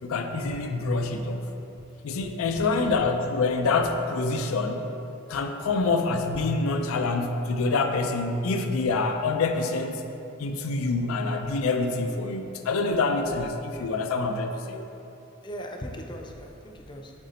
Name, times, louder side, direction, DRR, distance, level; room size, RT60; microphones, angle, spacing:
voice 1, 0.0-1.5 2.0-4.9 5.3-10.0 10.4-14.8, left 3 dB, 80° left, 6 dB, 0.4 m, -26 dB
voice 2, 2.4-2.9 15.4-17.1, equal, 20° left, 2 dB, 0.5 m, -39 dB
7.9 x 4.1 x 4.1 m, 2.9 s
head